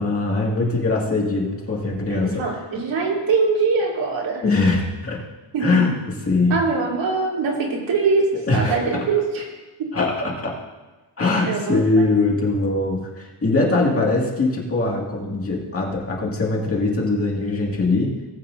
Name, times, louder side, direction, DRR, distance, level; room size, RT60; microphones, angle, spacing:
voice 1, 0.0-2.4 4.4-5.2 5.6-6.0 6.3-6.6 8.5-9.0 9.9-10.6 11.2-18.1, left 3 dB, 30° left, -3 dB, 2.2 m, -21 dB
voice 2, 2.1-4.4 5.5-5.8 6.5-9.4 9.8-9.9 11.4-12.1, right 4 dB, 70° right, -4 dB, 3.6 m, -22 dB
19.0 x 8.6 x 2.7 m, 1.2 s
cardioid pair, 140°, 46 cm